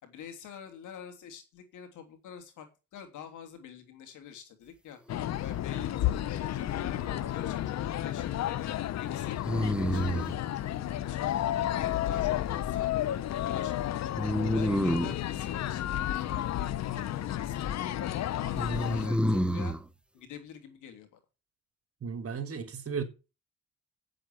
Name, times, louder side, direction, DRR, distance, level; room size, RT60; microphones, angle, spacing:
voice 1, 0.0-5.0 5.4-8.7 9.0-11.4 11.7-12.9 13.4-14.0 14.5-19.7 20.1-21.2, left 8 dB, 80° left, 3.0 m, -47 dB
sound 1, 5.1-19.1, left 12 dB, 60° left, 0.7 m, -32 dB
sound 2, 6.7-7.4 9.4-10.4 14.2-15.2 18.6-19.8, equal, 5° right, 0.9 m, -29 dB
voice 2, 22.0-23.0, right 6 dB, 50° right, 3.5 m, -35 dB
8.7 x 7.9 x 8.5 m
cardioid pair, 90°, 30 cm